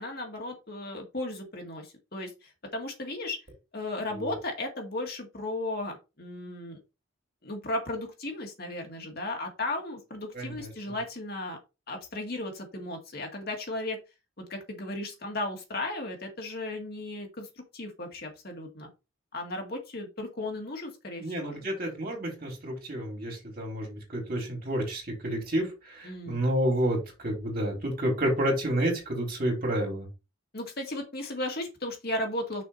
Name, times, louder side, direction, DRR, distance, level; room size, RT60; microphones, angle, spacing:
voice 1, 0.0-3.4 3.7-6.8 7.4-11.6 11.9-14.0 14.4-17.5 17.7-18.9 19.3-21.7 26.0-26.4 30.5-32.6, left 2 dB, 50° left, 2 dB, 1.9 m, -35 dB
voice 2, 10.3-10.7 21.2-30.1, right 1 dB, 45° right, 0 dB, 3.4 m, -30 dB
6.3 x 4.5 x 4.1 m, 0.27 s
head